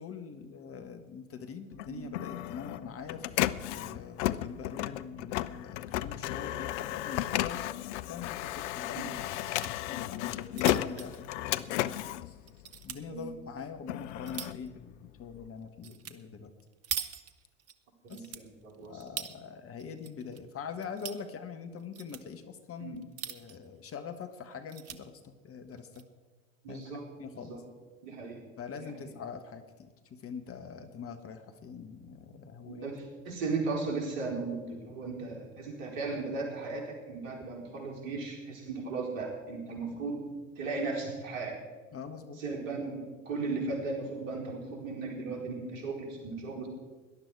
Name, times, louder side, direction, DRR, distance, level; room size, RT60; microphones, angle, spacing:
voice 1, 0.0-3.5 3.7-7.7 8.1-11.9 12.2-12.4 12.8-16.5 18.1-18.3 18.8-26.0 26.7-26.8 27.2-27.6 28.6-32.9 41.9-42.4, left 6 dB, 35° left, 8 dB, 1.5 m, -43 dB
Printer, 1.7-13.2 13.6-15.5, left 14 dB, 60° left, 0.6 m, -34 dB
sound 1, 6.8-7.3 7.6-7.7 8.0-8.1 9.1-9.7 10.2-12.1 12.5-13.0 13.6-14.7 15.8-16.2 16.4-17.7 18.1-19.4 19.8-20.4 20.7-21.2 21.8-22.2 23.0-23.7 24.1-24.2 24.5-25.0 25.7-26.0, right 9 dB, 40° right, 1.1 m, -42 dB
voice 2, 18.0-19.0 22.8-23.0 26.6-27.1 27.3-27.6 28.0-28.4 32.7-40.2 40.6-41.6 42.4-46.7, right 3 dB, 60° right, -1 dB, 4.5 m, -36 dB
18.5 x 11.5 x 4.8 m, 1.3 s
figure-of-eight pair, 70°, 40 cm